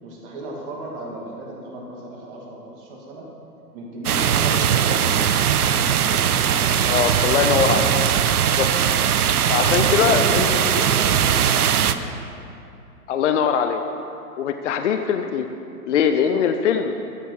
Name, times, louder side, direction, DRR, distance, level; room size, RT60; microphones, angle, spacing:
voice 1, 0.0-3.3 3.7-6.4 10.0-11.9 14.6-14.8, right 1 dB, 35° right, -2 dB, 2.3 m, -34 dB
sound 1, 4.0-11.9, right 8 dB, 70° right, 0.7 m, -20 dB
voice 2, 6.8-7.9 8.5-8.7 9.5-10.6 13.1-13.8 14.4-15.5 15.9-16.9, left 7 dB, 50° left, 7 dB, 0.7 m, -21 dB
13.5 x 8.0 x 4.7 m, 2.7 s
figure-of-eight pair, 125°, 47 cm